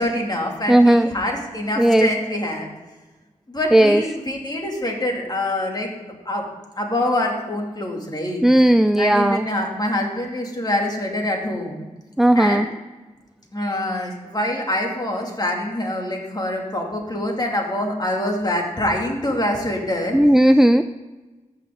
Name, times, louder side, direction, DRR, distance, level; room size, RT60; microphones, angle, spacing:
voice 1, 0.0-2.7 3.5-6.5 6.8-8.5 9.0-11.9 12.3-12.7 13.5-20.2, left 1 dB, 30° left, 0 dB, 2.5 m, -25 dB
voice 2, 0.7-1.1 1.8-2.1 3.7-4.0 8.4-9.5 12.2-12.7 20.1-20.8, right 1 dB, 5° right, 10 dB, 0.3 m, -15 dB
15.0 x 5.9 x 3.7 m, 1.2 s
cardioid pair, 60°, 13 cm